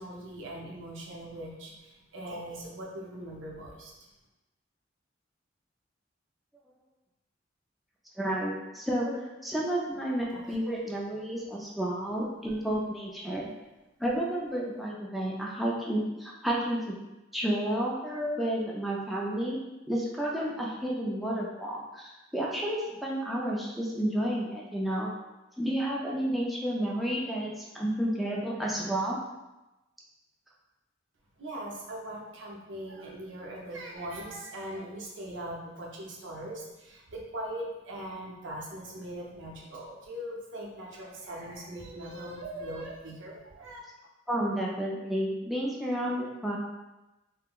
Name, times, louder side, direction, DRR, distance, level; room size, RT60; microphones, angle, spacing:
voice 1, 0.0-1.7 2.1-3.9 10.3-10.6 13.4-13.5 14.7-14.8 31.4-43.8, right 1 dB, 85° right, -2 dB, 0.6 m, -40 dB
voice 2, 8.2-13.5 14.0-17.0 17.3-19.6 19.9-25.1 25.6-29.2 44.3-46.6, right 1 dB, ahead, -4 dB, 0.3 m, -31 dB
3.6 x 2.0 x 2.3 m, 1.0 s
head